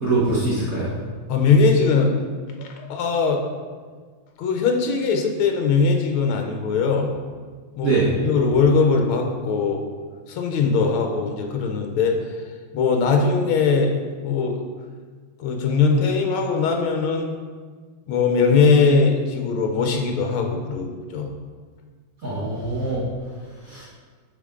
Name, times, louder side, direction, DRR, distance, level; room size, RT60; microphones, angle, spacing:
voice 1, 0.0-0.9 7.8-8.1 22.2-23.0 23.7-23.8, right 3 dB, 45° right, -8 dB, 1.7 m, -22 dB
voice 2, 1.3-2.1 2.6-3.4 4.4-7.1 7.8-9.8 10.3-12.2 12.7-13.9 14.2-14.6 15.4-17.3 18.1-21.3, left 4 dB, 85° left, 3 dB, 1.7 m, -20 dB
7.3 x 5.9 x 3.7 m, 1.5 s
omnidirectional pair, 2.3 m